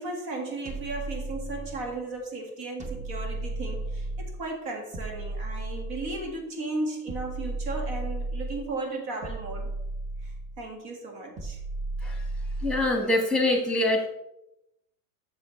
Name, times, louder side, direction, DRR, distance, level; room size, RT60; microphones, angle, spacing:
voice 1, 0.0-9.7 10.2-11.6, right 2 dB, 50° right, 2 dB, 1.8 m, -35 dB
sound 1, 0.7-2.0 2.8-4.4 4.9-6.4 7.1-8.7 9.2-10.6 11.4-13.0, right 2 dB, 15° right, 1.0 m, -34 dB
voice 2, 12.6-14.1, left 2 dB, ahead, 2 dB, 1.4 m, -24 dB
7.3 x 6.3 x 3.1 m, 0.88 s
hypercardioid pair, 95°, 48 cm